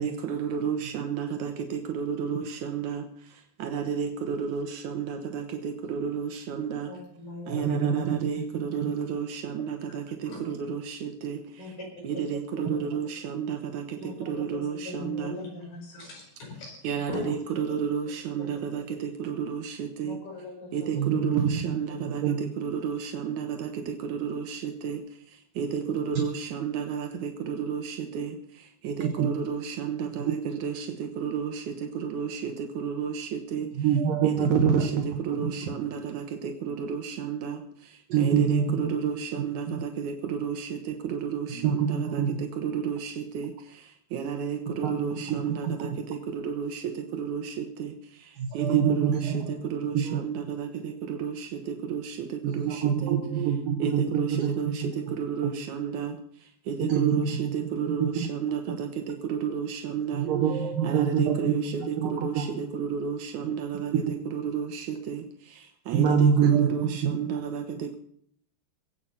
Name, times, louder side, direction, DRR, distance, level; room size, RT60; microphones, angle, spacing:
voice 1, 0.0-3.0 3.6-6.9 7.5-11.4 11.8-13.8 14.3-15.3 16.8-20.2 20.7-22.2 22.6-25.0 25.6-28.3 28.8-31.6 32.0-33.7 34.2-37.6 38.2-40.7 41.0-42.2 42.6-43.5 44.1-45.9 46.3-46.8 47.1-47.9 48.6-49.3 49.6-51.5 51.9-52.3 52.5-53.1 53.8-54.8 55.2-56.1 56.7-60.3 60.8-64.0 64.3-65.2 65.9-67.9, right 7 dB, 80° right, 5 dB, 1.7 m, -32 dB
voice 2, 6.9-7.7 9.6-9.7 10.3-10.5 11.6-11.8 12.5-12.8 14.0-14.3 14.7-17.3 20.0-20.7, left 2 dB, 60° left, -1 dB, 7.2 m, -40 dB
voice 3, 7.5-8.2 8.8-8.9 20.9-22.4 29.0-29.3 30.2-30.3 33.8-35.0 35.3-35.4 38.1-38.9 39.3-39.4 41.5-42.4 44.8-44.9 45.3-46.0 48.4-49.6 49.9-50.2 52.4-54.7 56.9-57.5 58.0-58.3 60.1-61.6 62.0-62.5 65.9-67.1, right 7 dB, 60° right, 3 dB, 2.7 m, -25 dB
21.5 x 8.6 x 5.7 m, 0.65 s
omnidirectional pair, 5.1 m